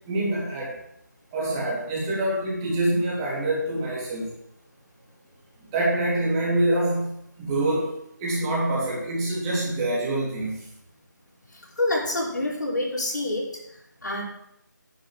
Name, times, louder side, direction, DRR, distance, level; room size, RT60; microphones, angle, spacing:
voice 1, 0.1-0.7 1.3-4.3 5.7-10.7, right 1 dB, 15° right, -6 dB, 3.5 m, -26 dB
voice 2, 11.5-14.2, left 1 dB, 70° left, -4 dB, 5.7 m, -28 dB
11.0 x 8.0 x 6.5 m, 0.76 s
figure-of-eight pair, 160°, 10 cm